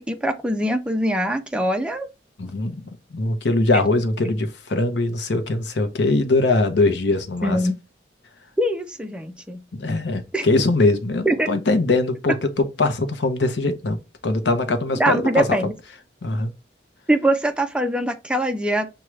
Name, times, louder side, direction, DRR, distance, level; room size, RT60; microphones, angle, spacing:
voice 1, 0.0-2.1 7.4-7.7 8.6-9.6 10.3-10.4 11.3-11.5 15.0-15.7 17.1-18.9, right 1 dB, 5° right, 0.4 m, -22 dB
voice 2, 2.4-7.6 9.7-15.6 16.2-16.5, left 2 dB, 70° left, 0.7 m, -22 dB
6.0 x 2.3 x 3.1 m
head